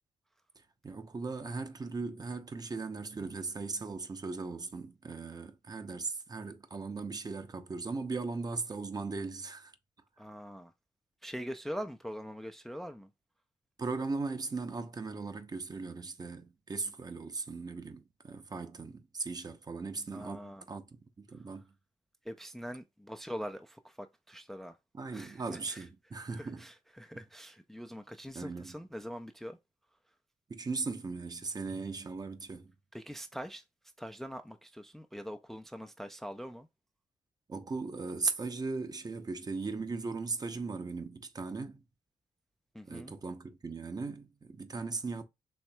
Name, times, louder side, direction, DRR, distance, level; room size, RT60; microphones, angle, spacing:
voice 1, 0.8-9.7 13.8-21.7 24.9-26.7 28.3-28.8 30.5-32.7 37.5-41.8 42.9-45.2, right 4 dB, 35° right, 0.7 m, -38 dB
voice 2, 10.2-10.7 11.2-13.1 20.1-20.6 22.3-24.8 25.1-25.8 26.4-29.6 32.9-33.6 34.0-36.7 42.7-43.1, equal, ahead, 0.4 m, -43 dB
4.3 x 3.1 x 2.2 m
supercardioid pair, 60°, 12 cm